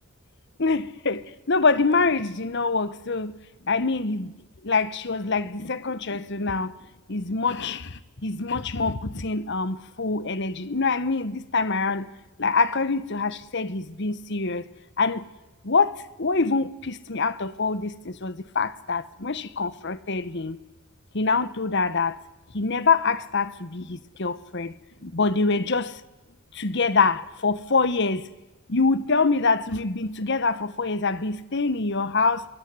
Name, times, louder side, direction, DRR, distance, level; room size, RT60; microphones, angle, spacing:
voice 1, 0.6-3.3 3.6-4.3 4.6-6.7 7.1-12.1 12.4-14.7 15.0-15.3 15.6-20.6 21.1-22.2 22.5-24.7 25.0-25.9 26.5-28.3 28.7-32.5, left 4 dB, 55° left, 1.1 m, -25 dB
25.0 x 22.5 x 9.6 m
head